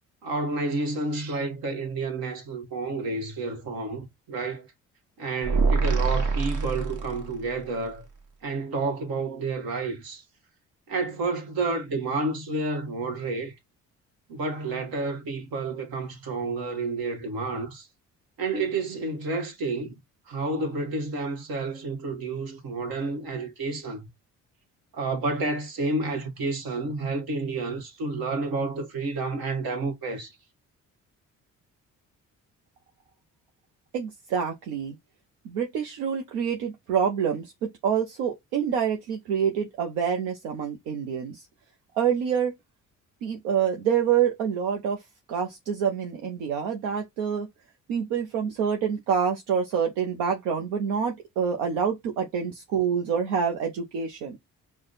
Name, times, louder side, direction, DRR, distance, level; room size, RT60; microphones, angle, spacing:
voice 1, 0.2-4.7 5.2-8.1 8.4-10.2 10.9-13.5 14.3-17.9 18.4-19.9 20.3-24.1 24.9-30.3, right 3 dB, 75° right, 1.3 m, -30 dB
sound 1, 5.4-7.5, right 4 dB, 55° right, 1.2 m, -25 dB
voice 2, 33.9-35.0 35.4-37.5 37.8-41.5 42.0-42.5 43.2-45.0 45.3-47.5 47.9-54.4, right 7 dB, 90° right, 0.7 m, -27 dB
4.8 x 2.3 x 3.9 m
supercardioid pair, 55°, 37 cm